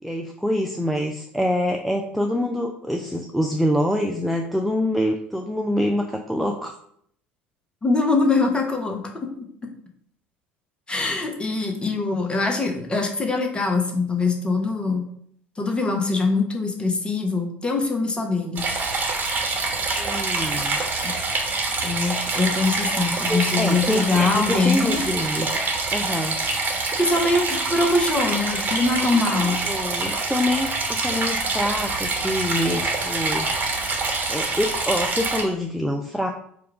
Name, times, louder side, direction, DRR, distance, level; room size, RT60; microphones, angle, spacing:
voice 1, 0.0-6.7 11.8-11.9 20.0-20.8 22.9-25.5 25.9-26.4 29.4-33.5 34.3-36.3, left 1 dB, ahead, 2 dB, 0.4 m, -25 dB
voice 2, 7.8-9.3 10.9-15.0 15.6-18.7 21.0-21.1 21.8-25.0 27.0-29.6, left 3 dB, 15° left, 3 dB, 0.9 m, -23 dB
sound 1, 18.6-35.4, right 3 dB, 30° right, 1.2 m, -26 dB
4.8 x 2.4 x 4.7 m, 0.67 s
figure-of-eight pair, 65°, 6 cm